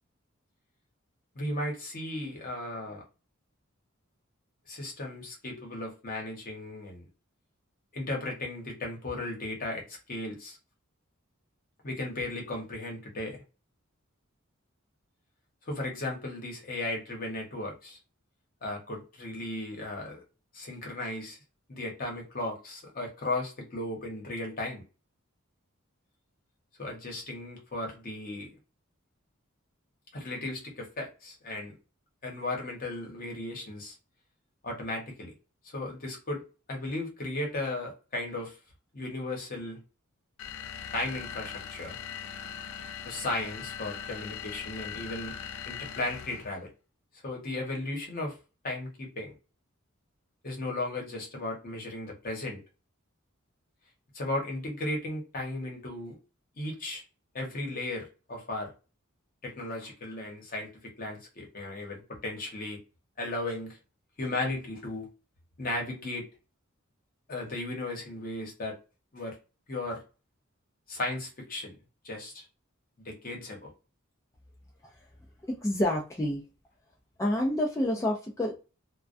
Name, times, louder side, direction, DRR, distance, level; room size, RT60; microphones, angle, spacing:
voice 1, 1.3-3.0 4.7-7.0 7.9-10.6 11.8-13.4 15.7-18.0 18.6-20.2 20.5-21.4 21.7-24.8 26.8-28.6 30.1-31.7 32.2-33.9 34.6-35.3 35.7-36.4 36.7-38.6 38.9-39.8 40.9-42.0 43.0-45.4 45.6-46.7 47.2-48.3 48.6-49.3 50.4-52.6 54.1-56.2 56.6-57.0 57.3-58.7 59.4-62.8 63.2-63.8 64.2-65.1 65.6-66.3 67.3-68.8 69.1-69.4 69.7-70.0 70.9-71.8 72.0-72.4 73.0-73.7, left 2 dB, 45° left, 0.9 m, -35 dB
sound 1, 40.4-46.6, left 8 dB, 75° left, 0.4 m, -40 dB
voice 2, 75.5-76.4 77.2-78.6, left 1 dB, 15° left, 0.4 m, -28 dB
2.2 x 2.2 x 2.5 m
head